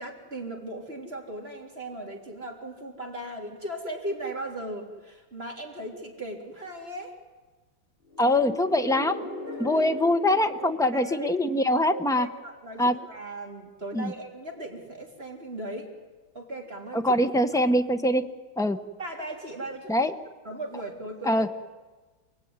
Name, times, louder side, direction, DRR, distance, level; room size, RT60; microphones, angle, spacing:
voice 1, 0.0-7.1 9.5-9.7 10.6-11.3 11.9-15.9 16.3-17.0 19.0-20.0 20.4-21.4, right 1 dB, 30° right, 1 dB, 3.8 m, -37 dB
sound 1, 8.1-11.9, left 1 dB, 25° left, 4.0 m, -38 dB
voice 2, 8.2-9.3 9.6-12.3 12.8-13.0 13.9-14.1 16.9-18.3 18.6-18.8 19.9-20.1 21.3-21.5, left 1 dB, 5° left, 8 dB, 0.6 m, -23 dB
28.5 x 19.5 x 9.7 m, 1.3 s
omnidirectional pair, 2.1 m